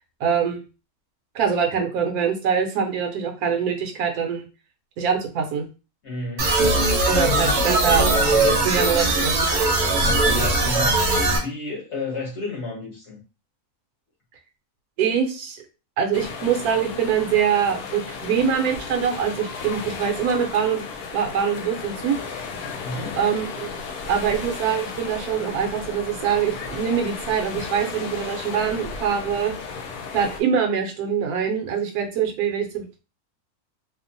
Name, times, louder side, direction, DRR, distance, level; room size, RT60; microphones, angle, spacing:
voice 1, 0.2-0.6 1.3-4.5 5.0-5.7 7.1-8.1 8.6-9.5 15.0-15.6 16.0-20.8 21.1-22.1 23.2-23.7 24.1-29.5 30.1-33.0, right 7 dB, 75° right, 4 dB, 1.1 m, -24 dB
voice 2, 6.0-6.5 7.2-7.7 10.2-11.0 11.3-13.2 22.8-23.2, left 2 dB, 55° left, -1 dB, 1.0 m, -31 dB
sound 1, 6.4-11.4, right 2 dB, 55° right, 0.9 m, -20 dB
sound 2, 16.1-30.4, left 5 dB, 85° left, 1.1 m, -34 dB
2.8 x 2.0 x 2.5 m, 0.32 s
omnidirectional pair, 1.6 m